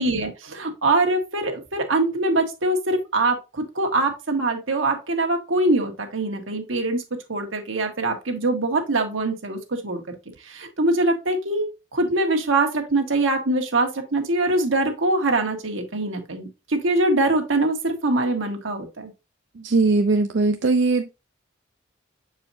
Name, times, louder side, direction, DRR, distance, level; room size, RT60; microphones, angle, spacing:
voice 1, 0.0-7.0 7.3-10.0 10.4-19.1, right 2 dB, 85° right, 1.4 m, -23 dB
voice 2, 19.6-21.1, right 3 dB, 65° right, 0.5 m, -20 dB
7.3 x 4.8 x 2.7 m
head